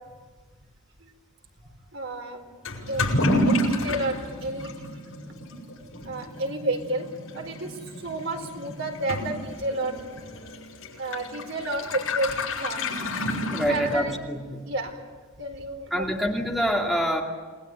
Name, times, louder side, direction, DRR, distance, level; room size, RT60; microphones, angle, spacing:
voice 1, 1.9-2.5 2.9-3.1 3.4-4.7 6.0-7.1 7.3-10.0 11.0-12.8 13.6-14.2 14.7-15.0 15.4-16.5, right 2 dB, 65° right, 3 dB, 4.5 m, -31 dB
Toilet flush / Liquid, 2.6-14.3, left 1 dB, 75° left, 7.8 m, -30 dB
voice 2, 13.5-14.6 15.9-17.2, equal, ahead, -1 dB, 2.6 m, -26 dB
29.5 x 21.0 x 9.2 m, 1.5 s
head